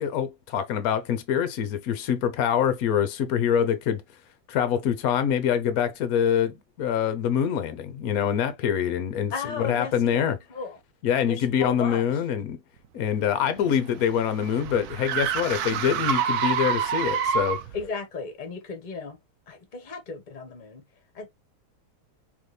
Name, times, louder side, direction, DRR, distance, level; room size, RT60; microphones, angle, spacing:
voice 1, 0.0-4.0 4.5-10.4 11.0-12.6 12.9-17.6, left 8 dB, 60° left, 1.0 m, -25 dB
voice 2, 9.3-10.7 11.3-12.0 17.7-19.2 19.5-20.8 21.1-21.3, left 4 dB, 30° left, 1.1 m, -35 dB
sound 1, 13.3-17.8, right 8 dB, 75° right, 0.9 m, -27 dB
4.0 x 3.3 x 3.2 m
omnidirectional pair, 2.2 m